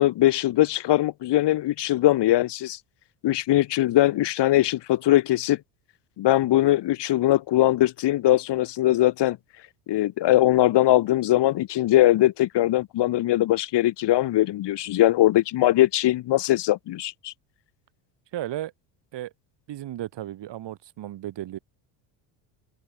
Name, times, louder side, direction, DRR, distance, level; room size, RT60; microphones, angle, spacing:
voice 1, 0.0-2.8 3.2-5.6 6.2-9.4 9.9-17.3, left 14 dB, 55° left, 2.1 m, -21 dB
voice 2, 18.3-18.7 19.1-19.3 19.7-21.6, right 13 dB, 55° right, 7.4 m, -34 dB
supercardioid pair, 85°, 50 cm